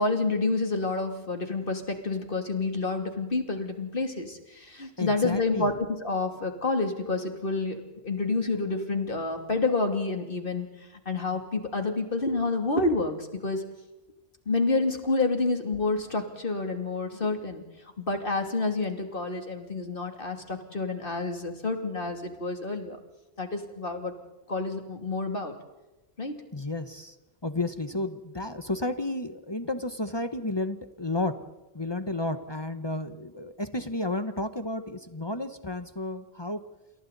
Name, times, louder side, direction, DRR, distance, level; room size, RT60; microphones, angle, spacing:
voice 1, 0.0-5.7 6.0-10.7 11.0-13.6 14.5-17.6 18.0-23.0 23.4-24.1 24.5-25.5 26.2-26.4, left 3 dB, 55° left, 4 dB, 3.0 m, -28 dB
voice 2, 5.0-5.7 26.5-27.2 27.4-31.4 31.7-36.6, left 2 dB, 25° left, 10 dB, 1.1 m, -32 dB
28.5 x 28.0 x 4.1 m, 1.0 s
omnidirectional pair, 1.1 m